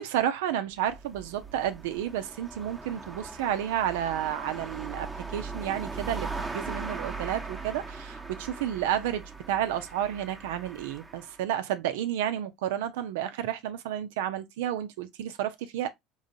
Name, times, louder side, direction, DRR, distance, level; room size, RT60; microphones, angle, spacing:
voice 1, 0.0-5.1 5.3-15.9, right 11 dB, 80° right, 0.6 m, -31 dB
sound 1, 0.7-11.3, right 4 dB, 15° right, 0.9 m, -39 dB
3.9 x 3.1 x 2.7 m
hypercardioid pair, 75°, 0 cm